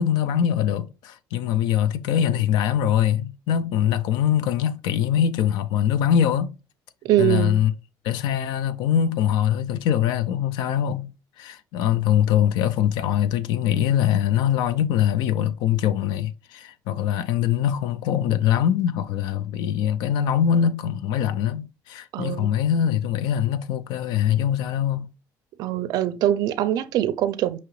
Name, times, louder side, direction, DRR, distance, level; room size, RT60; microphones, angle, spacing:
voice 1, 0.0-6.5 7.2-7.7 8.0-11.1 11.4-25.1, left 9 dB, 80° left, 0.4 m, -23 dB
voice 2, 7.0-7.6 22.1-22.5 25.6-27.6, right 12 dB, 65° right, 0.4 m, -23 dB
5.8 x 2.8 x 3.1 m
cardioid pair, 145°, 7 cm